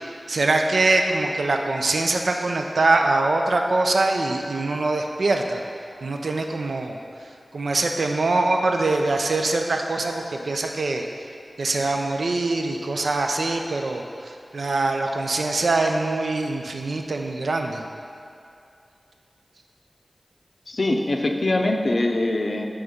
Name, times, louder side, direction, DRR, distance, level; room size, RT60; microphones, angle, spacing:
voice 1, 0.3-5.6 6.0-7.0 7.5-11.1 11.6-17.8, right 2 dB, 80° right, 3 dB, 0.4 m, -23 dB
voice 2, 20.7-22.7, left 2 dB, 55° left, 2 dB, 0.5 m, -23 dB
5.5 x 3.5 x 5.1 m, 2.5 s
wide cardioid pair, 70°, 0 cm